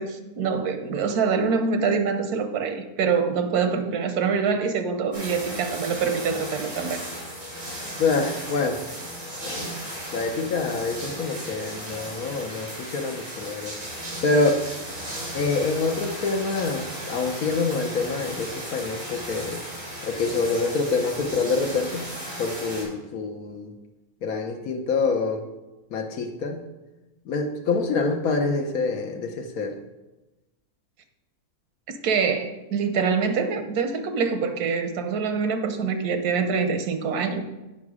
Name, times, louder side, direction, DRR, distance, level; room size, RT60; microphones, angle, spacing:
voice 1, 0.0-7.0 31.9-37.5, right 5 dB, 90° right, 8 dB, 1.3 m, -25 dB
sound 1, 5.1-22.8, equal, 55° right, 3.7 m, -36 dB
voice 2, 8.0-8.8 9.4-9.8 10.1-13.7 14.2-14.6 15.3-19.6 20.0-22.1 22.4-23.7 24.2-25.4 25.9-26.6 27.3-29.8, left 3 dB, 75° left, 5 dB, 1.3 m, -26 dB
8.9 x 5.4 x 4.9 m, 1.1 s
omnidirectional pair, 1.6 m